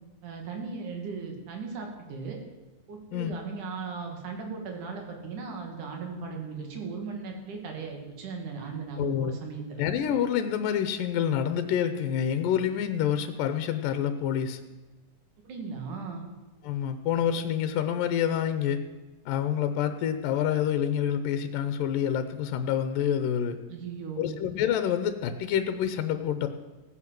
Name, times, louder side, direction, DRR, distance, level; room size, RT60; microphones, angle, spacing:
voice 1, 0.2-2.4 2.9-9.8 15.4-16.2 23.7-24.3, right 5 dB, 65° right, 2 dB, 3.9 m, -37 dB
voice 2, 3.1-3.4 9.0-9.3 9.8-14.6 16.6-18.8 19.3-23.6 24.2-26.5, left 9 dB, 80° left, 10 dB, 2.6 m, -27 dB
16.5 x 9.8 x 7.7 m, 1.2 s
omnidirectional pair, 3.9 m